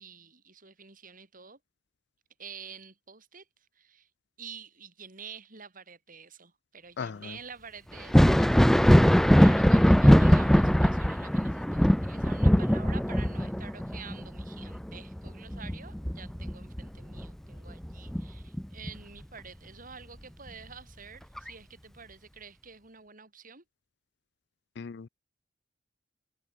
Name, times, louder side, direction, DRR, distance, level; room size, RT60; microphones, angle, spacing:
voice 1, 0.0-1.6 2.4-4.1 4.4-23.6, right 6 dB, 50° right, 5.4 m, -48 dB
voice 2, 7.0-7.4 24.8-25.1, left 5 dB, 65° left, 0.5 m, -37 dB
Thunder, 8.0-17.3 17.7-18.9 20.5-20.6 21.4-21.5, equal, ahead, 0.3 m, -21 dB
head